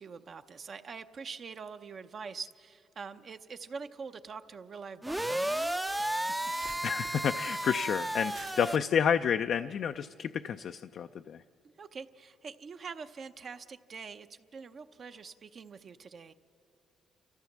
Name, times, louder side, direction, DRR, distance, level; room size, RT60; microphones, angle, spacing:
voice 1, 0.0-5.5 6.0-6.4 11.8-16.3, right 5 dB, 50° right, 8 dB, 0.7 m, -44 dB
sound 1, 5.0-8.8, right 1 dB, 5° right, 0.5 m, -33 dB
sound 2, 5.8-10.0, right 6 dB, 75° right, 2.2 m, -53 dB
voice 2, 6.8-11.4, left 7 dB, 65° left, 9 dB, 0.4 m, -30 dB
29.5 x 14.0 x 7.3 m, 2.6 s
cardioid pair, 90°, 0 cm